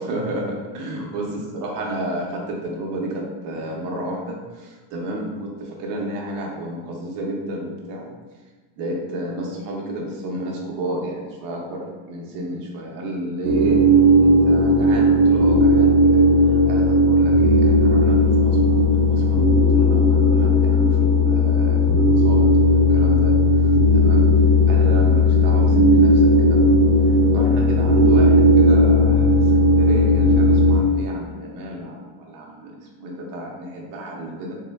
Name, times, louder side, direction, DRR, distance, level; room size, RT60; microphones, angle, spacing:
voice 1, 0.0-8.1 8.8-13.8 14.2-16.2 16.6-18.6 19.0-19.4 19.7-22.5 22.9-23.6 23.9-24.3 24.7-26.7 27.3-34.6, right 1 dB, 50° right, -1 dB, 0.7 m, -31 dB
sound 1, 13.4-30.8, left 1 dB, 85° right, 0.8 m, -16 dB
3.5 x 2.1 x 3.4 m, 1.3 s
cardioid pair, 175°, 45 cm